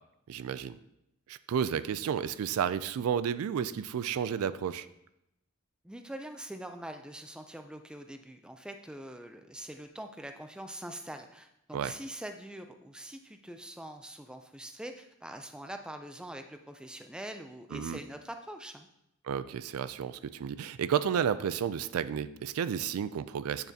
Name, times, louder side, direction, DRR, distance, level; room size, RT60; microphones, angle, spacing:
voice 1, 0.3-0.8 1.3-4.9 11.7-11.9 17.7-18.0 19.3-23.7, right 8 dB, 75° right, 15 dB, 0.3 m, -32 dB
voice 2, 5.8-18.9, right 1 dB, 5° right, 6 dB, 0.3 m, -44 dB
8.5 x 6.7 x 2.8 m, 0.83 s
head